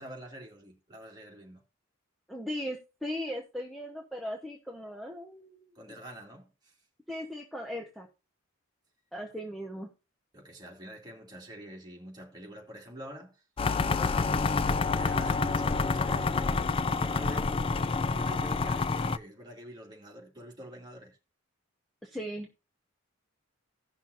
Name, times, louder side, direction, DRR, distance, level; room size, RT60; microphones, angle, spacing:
voice 1, 0.0-1.6 5.7-6.7 10.3-13.4 13.7-14.5 14.9-17.6 18.1-21.2, equal, 20° right, 2.3 m, -46 dB
voice 2, 2.3-5.9 7.1-8.1 9.1-9.9 22.0-22.5, equal, ahead, 1.0 m, -38 dB
sound 1, 13.6-19.2, left 4 dB, 25° left, 0.4 m, -28 dB
16.5 x 6.0 x 2.6 m
head